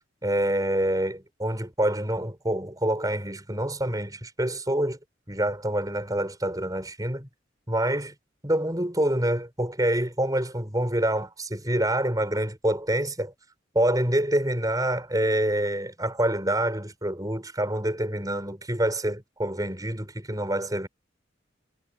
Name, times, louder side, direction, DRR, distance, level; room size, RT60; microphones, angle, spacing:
voice 1, 0.2-5.0 5.3-7.3 7.7-8.1 8.4-13.3 13.8-20.9, right 1 dB, 20° right, 6.7 m, -26 dB
head